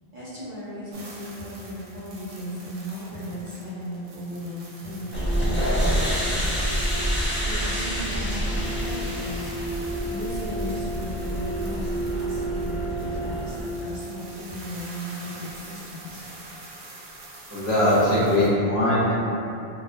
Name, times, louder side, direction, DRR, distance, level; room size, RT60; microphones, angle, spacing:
voice 1, 0.1-7.1 7.4-9.7 10.0-16.2, equal, 45° right, -12 dB, 1.0 m, -36 dB
sound 1, 0.9-18.5, right 2 dB, 70° right, 0.8 m, -45 dB
sound 2, 5.1-13.6, equal, 15° left, 0.4 m, -27 dB
voice 2, 17.5-19.1, left 1 dB, 75° left, -10 dB, 1.1 m, -21 dB
3.0 x 2.3 x 2.2 m, 2.8 s
omnidirectional pair, 1.1 m